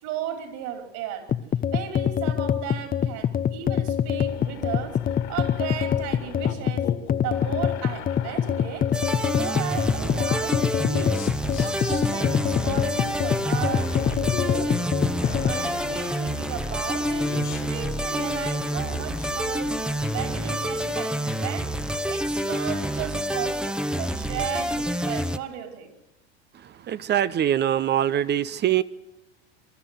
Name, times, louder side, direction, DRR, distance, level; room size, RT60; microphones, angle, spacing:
voice 1, 0.0-1.3 1.7-5.0 5.3-6.9 7.2-8.9 9.2-11.3 11.6-14.8 15.4-17.3 17.7-25.9, right 9 dB, 55° right, 5 dB, 5.2 m, -35 dB
sound 1, 1.3-15.6, left 9 dB, 25° left, 0.8 m, -25 dB
sound 2, 4.3-20.6, left 9 dB, 70° left, 3.1 m, -40 dB
sound 3, 8.9-25.4, equal, ahead, 1.0 m, -28 dB
voice 2, 26.9-28.8, right 11 dB, 30° right, 16 dB, 0.8 m, -23 dB
25.5 x 13.0 x 7.9 m, 0.99 s
hypercardioid pair, 90°, 34 cm